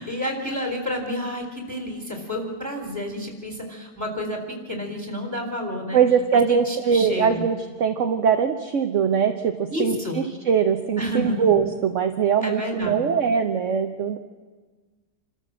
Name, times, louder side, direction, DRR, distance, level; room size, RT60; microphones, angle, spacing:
voice 1, 0.0-6.0 6.5-7.4 9.7-10.2 11.0-11.4 12.4-13.0, equal, 10° right, 3 dB, 3.8 m, -30 dB
voice 2, 5.9-14.2, right 7 dB, 50° right, 6 dB, 1.2 m, -22 dB
27.5 x 13.5 x 7.5 m, 1.4 s
omnidirectional pair, 1.8 m